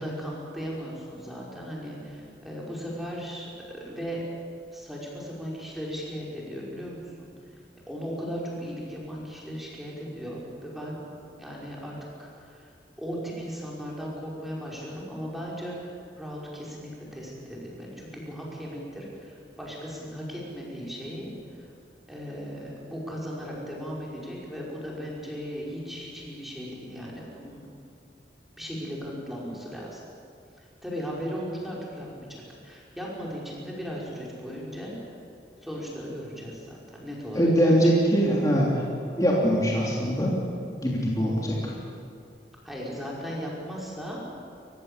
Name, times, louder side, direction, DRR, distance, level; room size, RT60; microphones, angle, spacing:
voice 1, 0.0-4.2 4.7-7.3 7.9-11.0 11.4-11.9 12.2-12.7 13.0-21.7 22.1-27.6 28.6-30.0 30.8-34.9 35.6-37.8 42.6-44.2, equal, ahead, -5 dB, 5.4 m, -37 dB
voice 2, 37.3-38.8 39.2-40.3 40.8-41.7, equal, 20° left, -4 dB, 3.1 m, -22 dB
29.5 x 15.5 x 8.4 m, 2.4 s
head